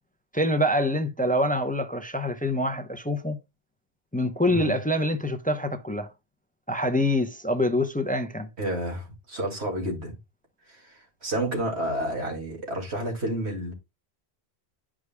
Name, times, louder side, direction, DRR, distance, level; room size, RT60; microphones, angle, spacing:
voice 1, 0.3-3.4 4.1-6.1 6.7-8.5, left 1 dB, 10° left, 0.5 m, -25 dB
voice 2, 8.6-10.2 10.7-13.7, right 1 dB, 80° right, 2.5 m, -30 dB
11.0 x 4.9 x 2.2 m
omnidirectional pair, 1.1 m